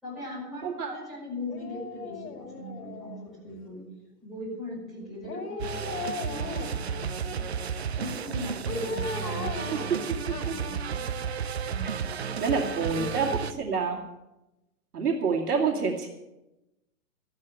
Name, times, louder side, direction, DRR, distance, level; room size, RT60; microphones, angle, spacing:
voice 1, 0.0-3.9 4.2-7.4 7.9-11.1 11.7-11.9 12.2-13.4, left 1 dB, ahead, -11 dB, 5.5 m, -40 dB
voice 2, 0.6-0.9 12.4-13.3 13.6-14.0 14.9-16.1, right 5 dB, 75° right, 0 dB, 2.5 m, -27 dB
Dog, 1.5-3.5 5.2-6.9 8.7-10.8 11.1-11.2, left 4 dB, 70° left, 2.6 m, -37 dB
sound 1, 5.6-13.5, right 7 dB, 45° right, 0.5 m, -33 dB
14.0 x 9.7 x 6.8 m, 0.96 s
hypercardioid pair, 175°, 46 cm